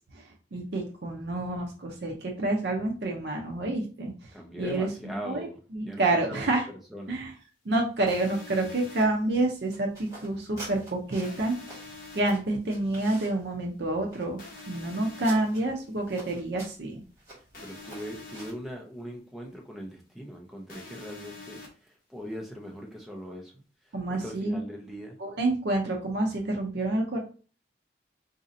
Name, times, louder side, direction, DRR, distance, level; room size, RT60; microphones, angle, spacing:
voice 1, 0.5-4.1 4.6-5.5 5.7-6.7 7.1-7.3 7.7-14.4 14.7-17.0 23.9-24.6 25.2-27.2, right 2 dB, 65° right, 0.6 m, -28 dB
voice 2, 4.3-6.6 6.9-7.2 17.3-23.5 23.8-25.2, equal, ahead, 0.6 m, -41 dB
sound 1, 8.1-9.0 11.2-12.2 14.4-15.4 17.5-18.5 20.7-21.7, left 3 dB, 50° left, 1.0 m, -45 dB
sound 2, 9.0-18.7, right 1 dB, 20° right, 1.6 m, -48 dB
4.0 x 2.7 x 2.6 m
head